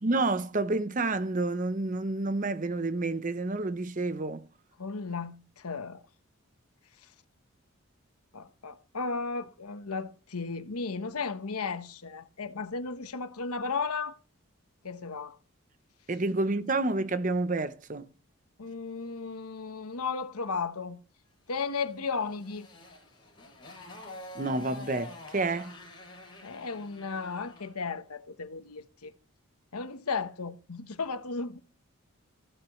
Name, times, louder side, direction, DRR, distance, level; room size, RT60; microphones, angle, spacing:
voice 1, 0.0-4.4 16.1-18.1 24.3-25.7, right 2 dB, 35° right, 0.7 m, -29 dB
voice 2, 4.8-6.0 7.0-7.1 8.3-14.2 14.8-15.4 18.6-21.0 21.5-22.7 26.4-29.1 29.7-31.6, left 4 dB, 90° left, 1.1 m, -35 dB
Motorcycle, 21.7-27.8, left 2 dB, 20° left, 6.3 m, -47 dB
14.5 x 11.5 x 3.1 m
head